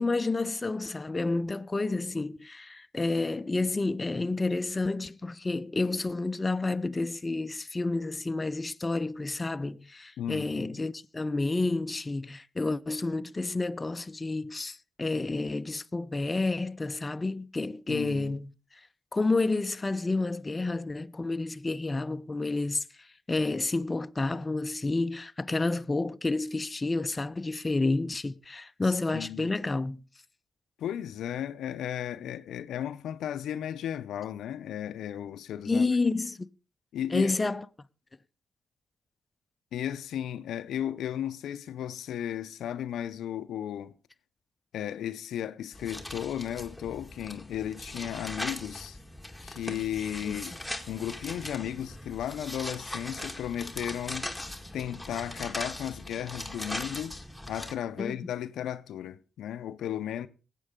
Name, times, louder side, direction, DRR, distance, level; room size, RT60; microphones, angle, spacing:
voice 1, 0.0-18.5 19.1-22.8 23.3-30.0 35.7-36.5 37.1-37.7 50.2-50.4 58.0-58.2, left 3 dB, 30° left, 0.6 m, -30 dB
voice 2, 10.2-10.8 17.9-18.4 28.8-29.5 30.8-35.8 36.9-37.3 39.7-43.9 44.7-49.0 49.4-50.6 50.9-54.3 54.7-57.2 57.5-60.3, left 10 dB, 80° left, 0.5 m, -35 dB
sound 1, 45.7-57.7, left 1 dB, ahead, 1.9 m, -40 dB
19.0 x 8.2 x 3.7 m
supercardioid pair, 50°, 0 cm